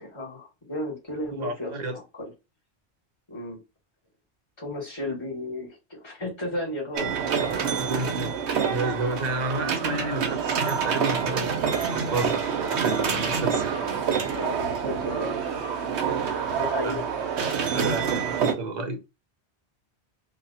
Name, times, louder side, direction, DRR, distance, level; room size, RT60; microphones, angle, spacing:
voice 1, 0.0-2.0 3.3-3.6 4.6-7.1 14.1-15.4 16.5-17.1, left 1 dB, 25° left, 1.4 m, -34 dB
voice 2, 1.3-2.0 7.6-8.3 8.6-13.8 16.8-17.0 17.7-19.1, right 2 dB, 45° right, 0.7 m, -31 dB
sound 1, 6.9-18.5, right 6 dB, 90° right, 1.0 m, -27 dB
2.9 x 2.3 x 3.9 m
omnidirectional pair, 1.1 m